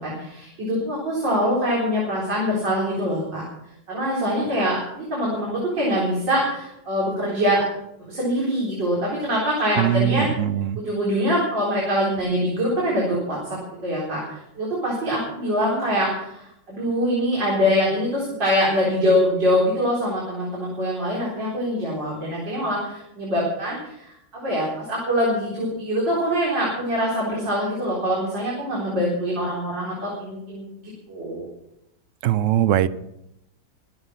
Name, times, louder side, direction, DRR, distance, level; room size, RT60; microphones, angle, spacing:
voice 1, 0.0-3.4 3.9-7.6 8.1-10.3 10.8-13.4 13.8-31.5, equal, 90° right, -5 dB, 4.8 m, -24 dB
voice 2, 9.8-10.8 32.2-32.9, right 11 dB, 60° right, 16 dB, 0.8 m, -21 dB
23.5 x 8.0 x 5.7 m, 0.82 s
omnidirectional pair, 1.9 m